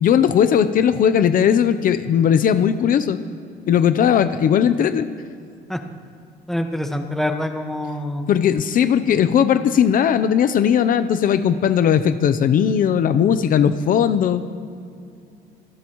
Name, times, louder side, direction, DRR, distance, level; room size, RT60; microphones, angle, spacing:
voice 1, 0.0-3.2 3.7-5.1 8.3-14.4, left 8 dB, 55° left, 11 dB, 0.7 m, -18 dB
voice 2, 6.5-8.3, left 1 dB, ahead, 4 dB, 1.4 m, -25 dB
26.0 x 17.5 x 3.1 m, 2.4 s
cardioid pair, 110°, 17 cm